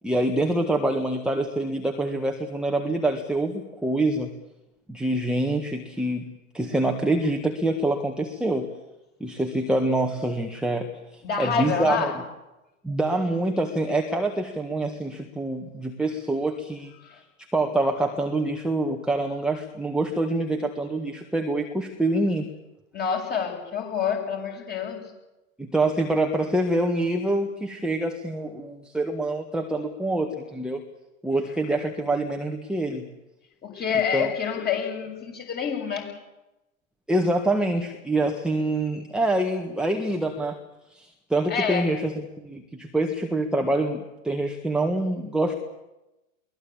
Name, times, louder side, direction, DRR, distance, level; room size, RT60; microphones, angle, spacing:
voice 1, 0.0-4.3 4.9-6.3 6.5-8.7 9.2-12.1 12.8-16.9 17.5-22.5 25.6-30.8 31.2-33.0 34.1-34.3 37.1-40.6 40.9-45.5, right 2 dB, ahead, 2 dB, 1.7 m, -26 dB
voice 2, 11.2-12.1 17.0-17.2 22.9-25.0 33.6-36.1 41.5-41.8, left 7 dB, 25° left, 2 dB, 7.5 m, -27 dB
23.0 x 19.0 x 8.6 m, 0.98 s
hypercardioid pair, 110°, 41 cm